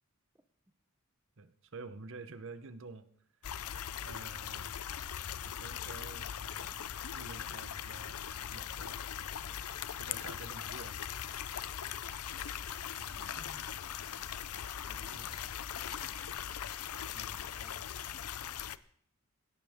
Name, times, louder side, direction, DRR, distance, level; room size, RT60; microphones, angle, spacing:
voice 1, 1.4-3.1 4.0-4.8 5.4-6.9 7.1-8.2 8.5-9.0 9.3-9.7 10.0-11.0 13.0-13.2 15.1-15.4 17.1-17.5, right 3 dB, 60° right, 0.9 m, -49 dB
sound 1, 3.4-18.8, left 9 dB, 85° left, 0.6 m, -40 dB
sound 2, 10.2-15.3, left 3 dB, 20° left, 5.7 m, -62 dB
voice 2, 13.2-15.5 15.8-16.4 17.0-18.0, right 1 dB, 10° right, 0.8 m, -61 dB
17.0 x 17.0 x 3.7 m
head